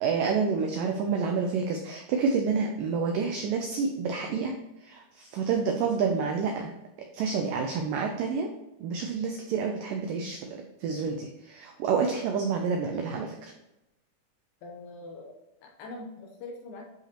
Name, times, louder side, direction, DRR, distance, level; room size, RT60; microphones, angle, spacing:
voice 1, 0.0-4.5 4.8-6.7 7.1-8.5 8.8-13.4, right 5 dB, 85° right, 3 dB, 1.9 m, -28 dB
voice 2, 14.6-16.8, left 2 dB, 75° left, 0 dB, 2.3 m, -43 dB
11.0 x 5.0 x 3.0 m, 0.93 s
omnidirectional pair, 4.7 m